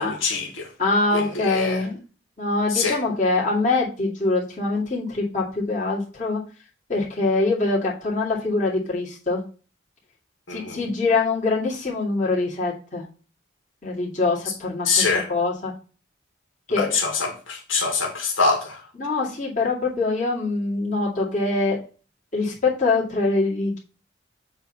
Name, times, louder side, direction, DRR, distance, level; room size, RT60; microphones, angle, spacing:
voice 1, 0.0-0.7 1.1-1.9 2.7-3.0 10.5-10.8 14.8-15.3 16.7-18.8, left 4 dB, 85° left, 1.8 m, -24 dB
voice 2, 0.8-2.0 2.4-6.4 6.9-9.4 10.5-13.0 13.8-15.0 15.3-15.7 16.7-17.0 19.0-21.8 22.3-23.8, left 3 dB, 40° left, 2.3 m, -24 dB
7.8 x 3.0 x 5.5 m
head